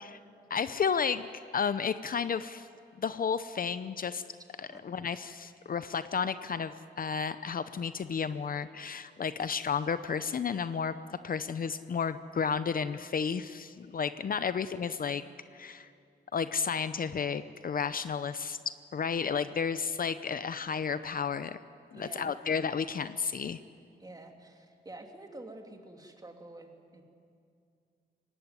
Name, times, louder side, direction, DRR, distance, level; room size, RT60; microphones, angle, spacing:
voice 1, 0.5-1.3 1.5-2.7 2.9-4.2 4.7-15.2 15.5-15.9 16.3-21.6 21.9-23.6, left 6 dB, 50° left, 13 dB, 0.7 m, -32 dB
voice 2, 21.9-22.3 24.0-27.0, right 2 dB, 20° right, 3 dB, 2.7 m, -48 dB
24.0 x 18.5 x 9.7 m, 2.4 s
wide cardioid pair, 110°, 18 cm